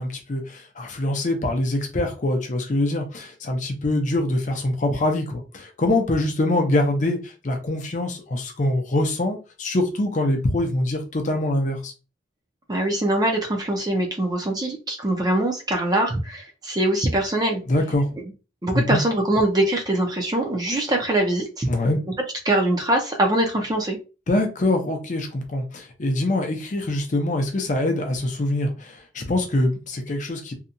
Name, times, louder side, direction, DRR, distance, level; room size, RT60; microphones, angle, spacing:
voice 1, 0.0-7.2 7.4-11.9 17.7-18.1 18.7-19.0 21.7-22.0 24.3-30.5, left 1 dB, 40° left, 0.5 m, -24 dB
voice 2, 12.7-17.6 18.2-18.3 18.6-21.7 22.5-24.0, right 1 dB, 20° right, 0.5 m, -23 dB
2.7 x 2.2 x 2.5 m
head